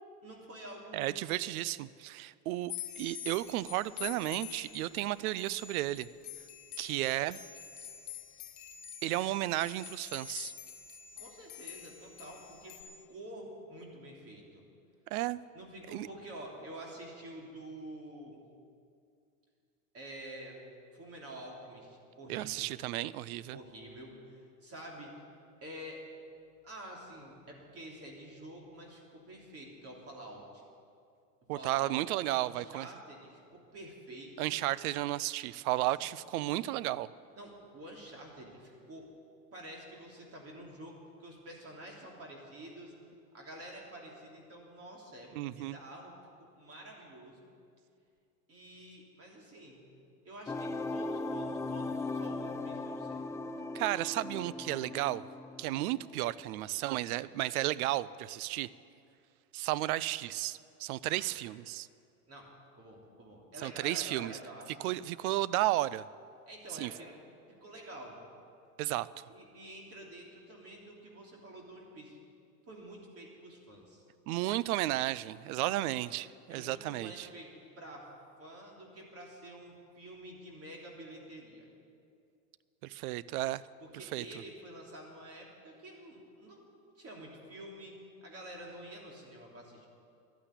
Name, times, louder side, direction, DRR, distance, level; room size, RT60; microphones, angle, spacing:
voice 1, 0.2-1.2 11.2-14.6 15.5-18.4 19.9-22.7 23.5-25.3 25.6-26.0 26.6-30.6 31.5-34.5 35.7-35.9 37.4-39.1 39.5-42.9 43.3-47.5 48.5-49.8 50.2-53.2 61.1-61.3 62.3-62.5 62.8-64.9 66.5-67.2 67.5-68.2 69.3-72.2 72.7-74.0 76.5-78.1 78.4-81.7 83.8-86.6 87.0-89.9, right 1 dB, 30° right, -1 dB, 3.2 m, -48 dB
voice 2, 0.9-6.1 6.8-7.4 9.0-10.5 15.1-15.4 15.9-16.1 22.3-23.6 31.5-32.9 34.4-37.1 45.3-45.8 53.7-55.2 55.6-58.7 59.5-61.9 63.6-64.4 64.8-66.1 66.7-66.9 68.8-69.3 74.3-77.3 82.8-83.6 83.9-84.3, right 16 dB, 70° right, 19 dB, 0.6 m, -33 dB
sound 1, 2.7-12.8, left 11 dB, 60° left, 1.6 m, -46 dB
sound 2, 50.5-56.3, left 2 dB, 5° left, 0.3 m, -38 dB
12.0 x 8.9 x 9.8 m, 2.4 s
hypercardioid pair, 100°, 44 cm